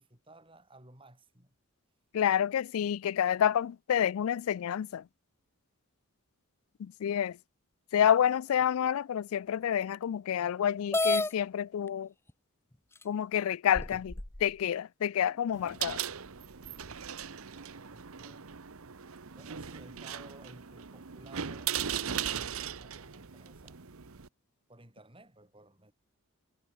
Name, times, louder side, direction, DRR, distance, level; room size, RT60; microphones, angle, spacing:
voice 1, 0.0-1.5 17.2-18.6 19.4-22.5 22.8-23.8 24.7-25.9, right 1 dB, 25° right, 5.6 m, -57 dB
voice 2, 2.1-5.0 6.8-7.4 7.9-12.1 13.0-14.1 14.4-16.0, left 9 dB, 70° left, 0.3 m, -28 dB
sound 1, 10.9-11.3 12.3-12.4 13.0-13.1 13.7-14.4, left 2 dB, 10° left, 0.7 m, -29 dB
sound 2, 15.5-24.3, right 8 dB, 70° right, 1.0 m, -38 dB
head